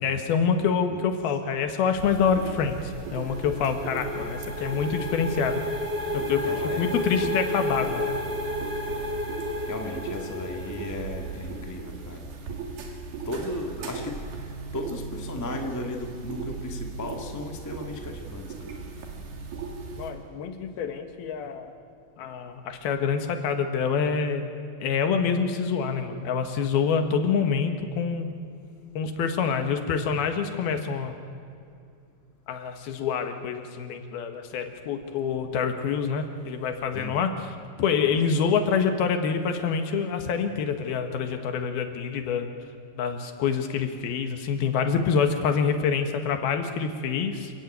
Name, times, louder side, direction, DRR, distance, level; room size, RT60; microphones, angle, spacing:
voice 1, 0.0-5.6 6.1-8.1 20.0-21.8 22.2-24.4 24.8-28.3 28.9-31.2 32.5-37.3 37.8-42.5 42.9-47.5, left 6 dB, 80° left, 6 dB, 3.4 m, -26 dB
sound 1, 2.0-20.1, right 4 dB, 85° right, 4.5 m, -38 dB
sound 2, 2.8-11.5, left 1 dB, 35° right, 1.0 m, -32 dB
voice 2, 6.4-6.9 9.6-12.3 13.2-14.2 14.7-18.5 36.9-37.2, left 1 dB, 10° left, 2 dB, 0.7 m, -35 dB
27.0 x 15.5 x 9.3 m, 2.4 s
omnidirectional pair, 4.4 m